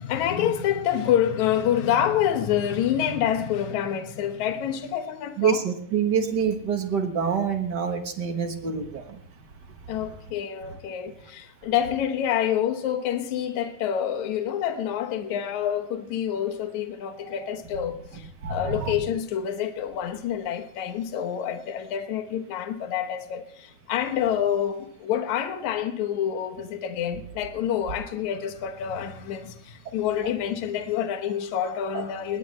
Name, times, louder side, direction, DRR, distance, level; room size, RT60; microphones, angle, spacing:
voice 1, 0.0-5.6 9.9-32.4, left 9 dB, 70° left, 2.5 m, -27 dB
voice 2, 5.4-9.2 17.2-17.3 18.4-18.9 31.9-32.0, right 7 dB, 50° right, 1.3 m, -26 dB
20.5 x 19.5 x 3.3 m
omnidirectional pair, 3.6 m